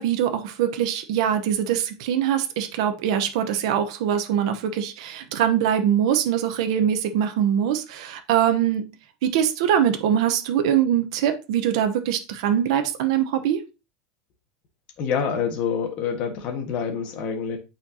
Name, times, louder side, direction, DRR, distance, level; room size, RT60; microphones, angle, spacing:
voice 1, 0.0-8.9 9.2-13.6, right 9 dB, 70° right, 0.9 m, -23 dB
voice 2, 15.0-17.6, left 6 dB, 40° left, 1.5 m, -26 dB
8.6 x 4.4 x 2.8 m
supercardioid pair, 165°, 3 cm